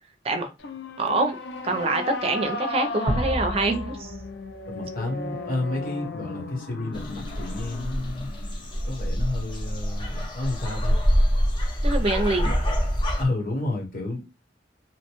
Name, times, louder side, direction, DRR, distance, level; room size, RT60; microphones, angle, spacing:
sound 1, 0.6-10.0, left 3 dB, 70° left, 0.5 m, -36 dB
voice 1, 1.0-1.4 1.6-4.1 5.0-5.1 11.8-12.5, right 2 dB, 35° right, 0.4 m, -25 dB
sound 2, 3.1-6.0, right 1 dB, ahead, 0.9 m, -32 dB
voice 2, 4.7-8.3 8.8-11.0 12.4-12.6 13.2-14.3, left 2 dB, 55° left, 1.2 m, -31 dB
sound 3, 6.9-13.2, equal, 30° left, 0.7 m, -25 dB
2.9 x 2.1 x 2.9 m
head